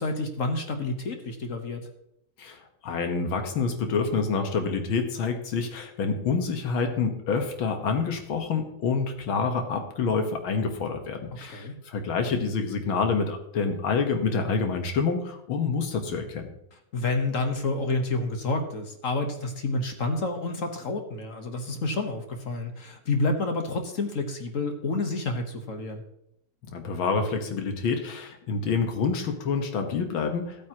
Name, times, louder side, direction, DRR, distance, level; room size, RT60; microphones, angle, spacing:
voice 1, 0.0-1.9 11.4-11.7 16.9-26.0, left 2 dB, 45° left, 5 dB, 1.4 m, -29 dB
voice 2, 2.4-16.5 26.7-30.7, left 5 dB, 80° left, 5 dB, 2.2 m, -27 dB
15.0 x 8.6 x 3.0 m, 0.77 s
omnidirectional pair, 2.2 m